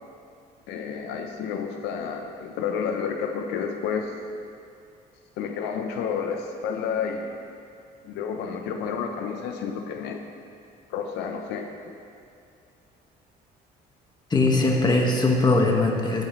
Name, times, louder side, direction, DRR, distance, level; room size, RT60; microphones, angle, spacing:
voice 1, 0.7-4.1 5.4-7.3 8.0-10.2 10.9-11.9, left 6 dB, 90° left, 4 dB, 0.9 m, -30 dB
voice 2, 14.3-16.3, left 2 dB, 25° left, 0 dB, 1.7 m, -21 dB
15.5 x 9.3 x 3.2 m, 2.5 s
cardioid pair, 110°, 17 cm